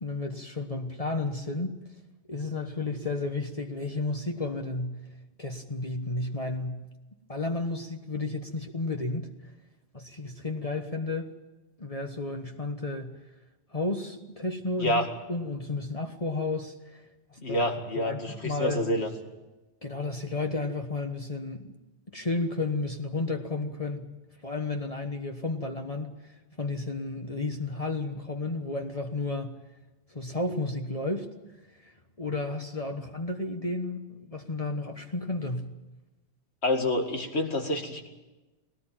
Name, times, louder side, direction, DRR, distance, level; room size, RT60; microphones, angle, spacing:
voice 1, 0.0-1.8 2.3-5.0 5.4-6.8 7.3-9.3 9.9-11.3 11.8-13.2 13.7-15.0 15.3-17.0 17.3-17.6 17.9-18.8 19.8-21.8 22.1-24.1 24.4-29.6 30.1-31.3 31.7-31.9 32.2-35.7, left 2 dB, 35° left, 4 dB, 1.3 m, -32 dB
voice 2, 17.4-19.1 36.6-38.1, left 1 dB, 70° left, 4 dB, 2.5 m, -28 dB
21.0 x 18.0 x 9.0 m, 1.1 s
omnidirectional pair, 1.1 m